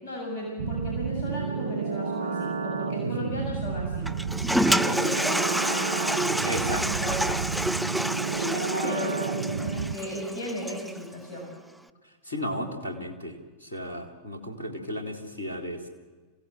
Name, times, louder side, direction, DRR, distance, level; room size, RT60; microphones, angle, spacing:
voice 1, 0.0-4.2 4.6-7.6 8.4-11.5, equal, 60° left, 0 dB, 7.1 m, -35 dB
sound 1, 0.6-10.0, right 5 dB, 70° right, 0.7 m, -31 dB
voice 2, 3.0-3.5 6.5-6.8 12.2-15.8, equal, 75° left, 3 dB, 3.2 m, -34 dB
Toilet flush, 4.1-11.0, right 1 dB, ahead, 0.6 m, -28 dB
26.5 x 16.5 x 7.7 m, 1.4 s
figure-of-eight pair, 90°, 0 cm